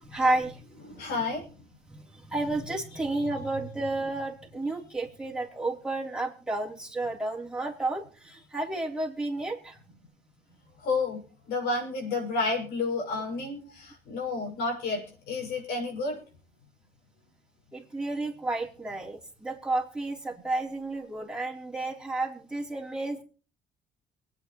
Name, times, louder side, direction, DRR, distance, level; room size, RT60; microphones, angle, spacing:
voice 1, 0.0-0.8 1.9-9.8 17.7-23.2, right 2 dB, 5° right, -3 dB, 3.7 m, -31 dB
voice 2, 0.9-1.4 10.8-11.2 11.5-16.2, left 3 dB, 75° left, 1 dB, 6.4 m, -30 dB
24.0 x 9.4 x 3.2 m, 0.38 s
cardioid pair, 110°, 17 cm